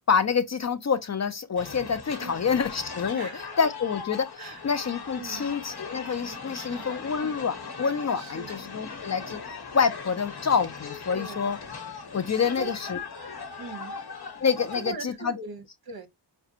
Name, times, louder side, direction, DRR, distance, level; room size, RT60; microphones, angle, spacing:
voice 1, 0.1-11.6 12.1-13.0 14.4-15.4, left 6 dB, 40° left, 0.4 m, -27 dB
sound 1, 1.6-14.9, left 5 dB, 60° left, 1.1 m, -39 dB
voice 2, 2.2-2.5 3.1-3.6 4.4-4.6 5.2-5.5 6.5-7.1 8.1-8.6 11.1-11.5 12.5-12.7 13.6-14.0 14.7-16.1, right 5 dB, 55° right, 0.9 m, -41 dB
5.8 x 2.2 x 2.7 m
wide cardioid pair, 125°, 43 cm